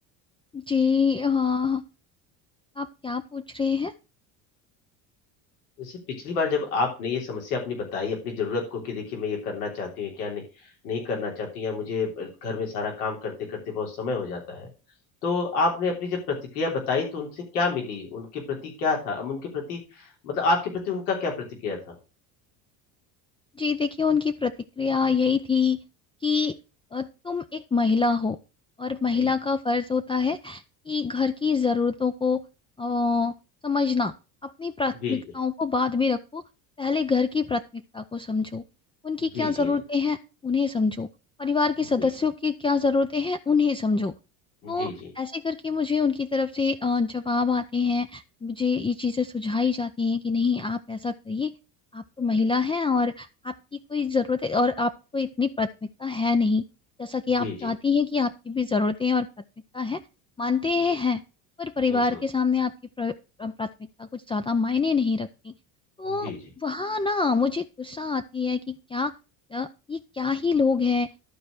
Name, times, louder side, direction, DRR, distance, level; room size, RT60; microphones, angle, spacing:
voice 1, 0.5-1.8 2.8-3.9 23.6-25.8 26.2-26.6 26.9-28.4 28.8-32.4 32.8-33.3 33.6-34.1 34.4-36.4 36.8-38.6 39.0-40.2 40.4-41.1 41.4-44.1 44.7-51.5 51.9-55.7 56.0-56.6 57.0-59.3 59.7-60.0 60.4-61.2 61.6-63.7 64.0-65.5 66.0-69.1 69.5-71.1, left 4 dB, 10° left, 9 dB, 0.5 m, -25 dB
voice 2, 6.2-14.7 15.2-21.9 29.2-29.3 35.0-35.2 39.3-39.8 42.0-42.1 44.6-45.1 57.4-57.7 61.9-62.2 66.1-66.4, left 4 dB, 85° left, 0 dB, 3.3 m, -29 dB
12.0 x 4.4 x 6.4 m, 0.31 s
supercardioid pair, 85°, 45 cm